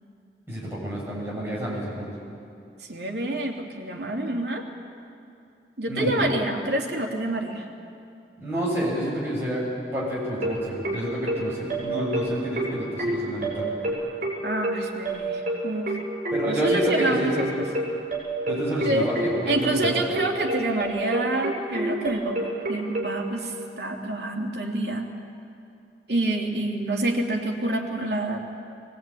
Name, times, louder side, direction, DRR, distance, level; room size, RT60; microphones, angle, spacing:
voice 1, 0.5-2.2 5.9-6.1 8.4-9.6 9.9-13.8 16.3-17.6 18.5-19.9, equal, 15° right, -6 dB, 7.8 m, -28 dB
voice 2, 2.9-4.6 5.8-7.6 14.4-16.0 16.5-17.7 18.8-19.1 19.5-25.1 26.1-28.4, right 1 dB, 75° right, 0 dB, 2.9 m, -27 dB
sound 1, 10.4-23.1, right 1 dB, 45° right, 7.5 m, -28 dB
23.0 x 19.0 x 9.2 m, 2.5 s
head